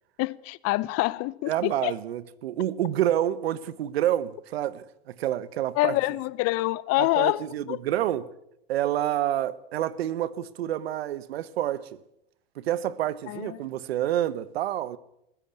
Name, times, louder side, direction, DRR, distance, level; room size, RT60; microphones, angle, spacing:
voice 1, 0.2-1.9 5.8-7.8 13.3-13.6, left 19 dB, 50° left, 0.9 m, -26 dB
voice 2, 1.5-6.0 7.0-8.3 8.7-11.9 12.6-15.0, right 12 dB, 85° right, 1.1 m, -28 dB
21.0 x 15.0 x 8.6 m
hypercardioid pair, 100°, 30 cm